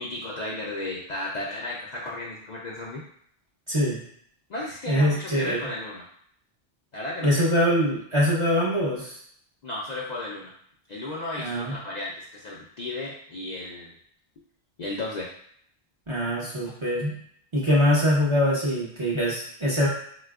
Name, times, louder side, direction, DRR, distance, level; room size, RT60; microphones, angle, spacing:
voice 1, 0.0-3.0 4.5-6.0 6.9-7.4 9.6-10.5 10.9-13.9 14.8-15.3, left 2 dB, 55° left, -4 dB, 0.5 m, -34 dB
voice 2, 3.7-4.0 4.9-5.7 7.2-9.2 11.4-11.7 16.1-17.1 17.5-19.9, equal, 35° right, -5 dB, 0.6 m, -23 dB
4.1 x 2.2 x 2.3 m, 0.64 s
omnidirectional pair, 1.1 m